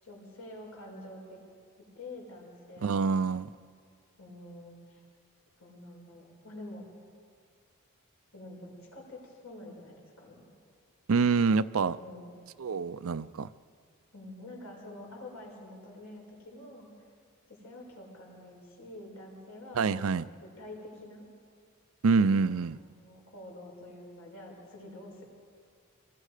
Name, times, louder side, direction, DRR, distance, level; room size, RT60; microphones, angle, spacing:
voice 1, 0.0-1.4 1.9-3.1 4.2-5.0 5.6-6.9 8.3-10.4 12.0-12.3 14.1-16.9 17.5-21.2 22.2-22.6 23.0-25.3, left 1 dB, 80° left, -2 dB, 6.2 m, -47 dB
voice 2, 2.8-3.5 11.1-12.0 12.6-13.5 19.8-20.2 22.0-22.8, right 4 dB, 70° right, 15 dB, 0.5 m, -26 dB
27.5 x 20.5 x 4.9 m, 2.2 s
head